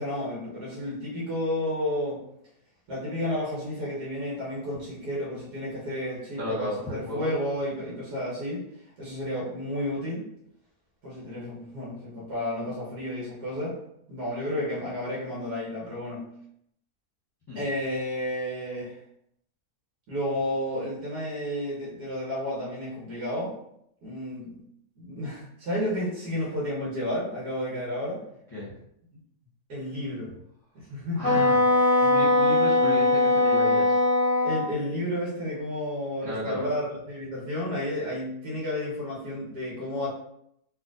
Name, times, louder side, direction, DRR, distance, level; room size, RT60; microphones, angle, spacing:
voice 1, 0.0-2.2 2.9-8.6 9.0-10.3 11.0-13.8 14.1-16.3 17.5-19.0 20.1-23.5 24.0-24.6 25.0-28.2 29.7-30.3 30.8-31.4 31.9-32.2 34.4-40.1, left 1 dB, 80° right, -6 dB, 1.9 m, -31 dB
voice 2, 6.4-7.3 17.5-17.7 28.5-28.7 31.2-31.6 32.0-34.0 36.2-36.7, left 1 dB, 20° left, -9 dB, 0.8 m, -34 dB
Wind instrument woodwind instrument, 31.2-34.7, left 2 dB, 55° left, 0.3 m, -21 dB
4.2 x 2.7 x 2.5 m, 0.75 s
omnidirectional pair, 1.7 m